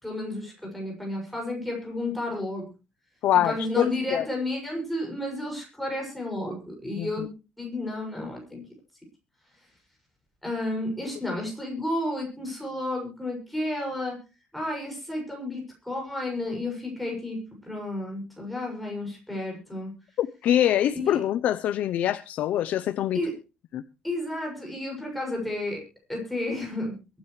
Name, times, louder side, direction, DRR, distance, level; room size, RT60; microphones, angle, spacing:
voice 1, 0.0-2.7 3.4-7.3 7.6-8.6 10.4-14.2 14.5-17.4 17.6-19.9 21.0-21.2 23.1-23.3 24.0-25.8 26.1-26.9, left 1 dB, ahead, -1 dB, 6.4 m, -32 dB
voice 2, 3.2-4.3 7.0-7.1 20.2-23.2 23.7-23.8, left 11 dB, 55° left, 12 dB, 0.7 m, -24 dB
23.0 x 9.9 x 3.2 m, 0.31 s
cardioid pair, 180°, 3 cm